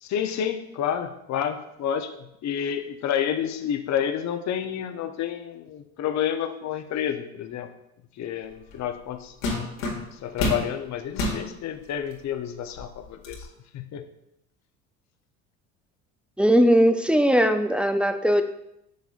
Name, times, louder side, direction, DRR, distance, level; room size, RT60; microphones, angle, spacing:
voice 1, 0.0-7.7 8.2-9.3 10.1-13.4 13.7-14.0, left 9 dB, 45° left, 8 dB, 0.7 m, -29 dB
sound 1, 8.7-8.9 9.4-10.7 11.1-11.4 12.1-12.2 12.7-13.4, left 2 dB, 80° left, 1.9 m, -28 dB
voice 2, 16.4-18.4, equal, 5° right, 8 dB, 0.3 m, -19 dB
6.8 x 6.3 x 2.5 m, 0.81 s
supercardioid pair, 80°, 40 cm